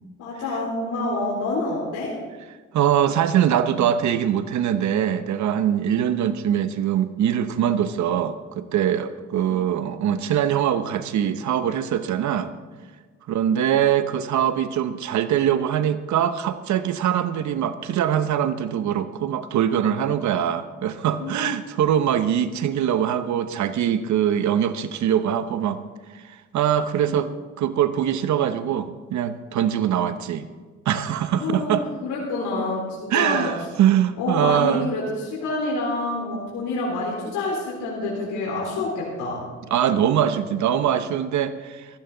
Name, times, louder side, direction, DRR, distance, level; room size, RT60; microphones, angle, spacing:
voice 1, 0.2-2.1 9.3-9.6 21.2-21.5 27.1-27.2 31.3-33.5 34.2-39.4, left 2 dB, 85° left, -4 dB, 4.0 m, -27 dB
voice 2, 2.7-12.5 13.3-25.8 26.1-27.3 27.6-30.5 30.8-31.9 33.1-34.9 39.7-41.9, right 9 dB, 70° right, 11 dB, 0.9 m, -23 dB
16.0 x 14.5 x 3.9 m, 1.4 s
cardioid pair, 90°, 30 cm